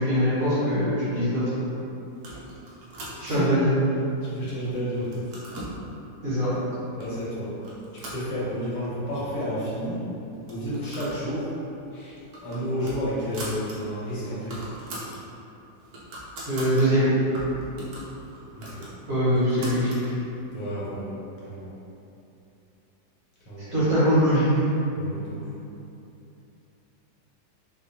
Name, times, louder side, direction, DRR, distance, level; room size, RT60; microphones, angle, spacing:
voice 1, 0.0-1.4 3.2-3.7 6.2-6.5 16.5-17.1 19.1-20.1 23.7-24.5, equal, 50° right, -13 dB, 1.8 m, -22 dB
sound 1, 2.2-3.6 4.1-4.6 4.9-5.8 6.5-6.6 7.0-7.3 7.6-8.8 9.2-9.3 9.5-9.6 10.3-11.2 11.5-11.7 12.1-13.8 14.1-14.2 14.4-15.2 15.6-16.9 17.3-20.1, right 1 dB, 65° right, 1.2 m, -40 dB
voice 2, 3.2-3.5 4.2-5.3 7.0-7.6 7.9-10.1 10.5-11.5 11.9-14.7 18.5-18.9 20.5-21.7 23.4-23.9 24.9-25.5, equal, 75° left, -9 dB, 1.6 m, -31 dB
4.2 x 2.7 x 2.7 m, 2.8 s
omnidirectional pair, 1.9 m